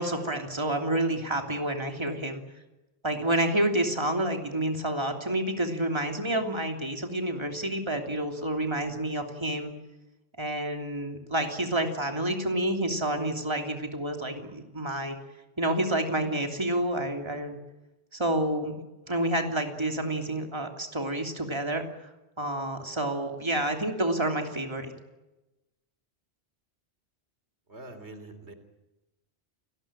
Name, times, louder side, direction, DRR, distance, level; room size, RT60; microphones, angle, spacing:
voice 1, 0.0-2.4 3.0-9.7 10.4-15.2 15.6-17.6 18.1-18.8 19.1-21.8 22.4-24.9, right 1 dB, 25° right, 4 dB, 3.1 m, -29 dB
voice 2, 27.7-28.5, right 2 dB, 85° right, 9 dB, 3.6 m, -44 dB
29.5 x 20.0 x 8.9 m, 1.0 s
omnidirectional pair, 1.1 m